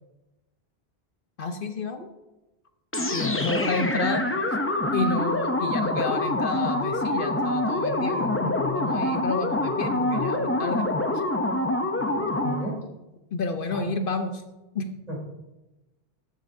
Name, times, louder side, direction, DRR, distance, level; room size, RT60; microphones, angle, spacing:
voice 1, 1.4-2.1 3.1-4.2 4.9-10.9 11.1-11.2 13.3-14.3 14.7-14.9, left 4 dB, 60° left, 7 dB, 0.9 m, -30 dB
sound 1, 2.9-12.8, left 1 dB, 15° left, 0.6 m, -26 dB
voice 2, 3.5-4.0 12.0-12.7 13.7-13.9 15.1-15.2, right 1 dB, 40° right, -4 dB, 3.5 m, -34 dB
14.0 x 9.8 x 2.7 m, 1.0 s
omnidirectional pair, 1.0 m